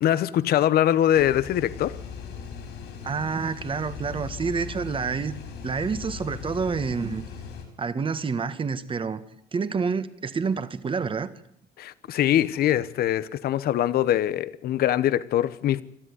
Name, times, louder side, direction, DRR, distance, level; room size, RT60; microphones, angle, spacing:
voice 1, 0.0-2.0 11.8-15.8, left 11 dB, 65° left, 1.0 m, -23 dB
sound 1, 1.1-7.6, left 7 dB, 80° left, 6.9 m, -39 dB
voice 2, 3.0-5.3 5.6-7.2 7.8-9.2 9.5-11.3, right 5 dB, 30° right, 1.7 m, -28 dB
27.5 x 13.0 x 9.8 m
cardioid pair, 110°, 17 cm